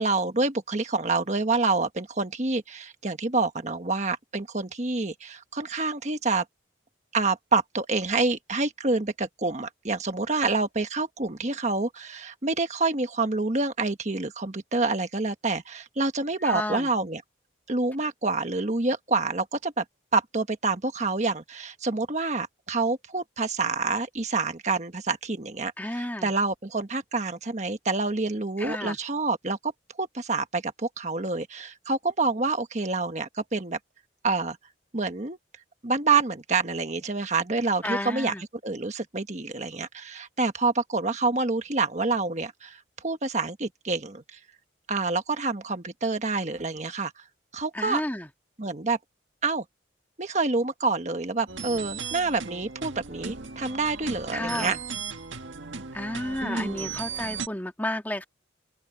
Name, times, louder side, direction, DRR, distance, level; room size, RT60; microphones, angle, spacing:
voice 1, 0.0-6.4 7.1-17.2 17.7-19.8 20.1-29.7 30.0-33.8 34.2-34.6 34.9-35.4 35.8-38.3 38.6-44.4 44.9-47.2 47.5-48.0 48.6-49.0 49.4-49.6 50.2-54.8 56.4-57.0, right 3 dB, 40° right, 1.3 m, -27 dB
voice 2, 16.4-16.9 25.8-26.3 28.6-29.0 37.8-38.4 47.7-48.3 54.3-54.8 55.9-58.2, left 1 dB, 10° left, 1.7 m, -31 dB
sound 1, 51.5-57.5, right 5 dB, 85° right, 1.7 m, -37 dB
open air
head